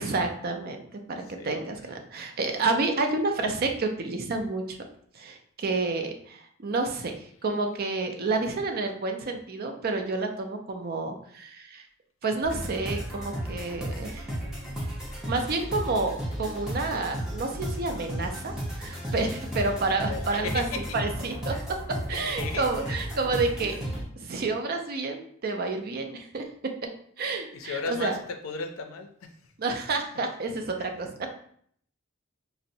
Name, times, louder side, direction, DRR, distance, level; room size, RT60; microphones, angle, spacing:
voice 1, 0.0-4.8 5.1-11.8 12.2-14.3 15.2-20.6 20.9-21.6 22.1-23.8 24.2-26.7 27.2-28.2 29.6-31.3, right 3 dB, 50° right, 4 dB, 0.5 m, -29 dB
sound 1, 12.4-24.0, equal, 5° right, 0.7 m, -34 dB
voice 2, 20.0-20.8 21.5-21.6 22.1-23.0 27.5-29.3 30.8-30.9, left 4 dB, 80° left, 6 dB, 0.5 m, -36 dB
3.9 x 2.0 x 2.6 m, 0.62 s
head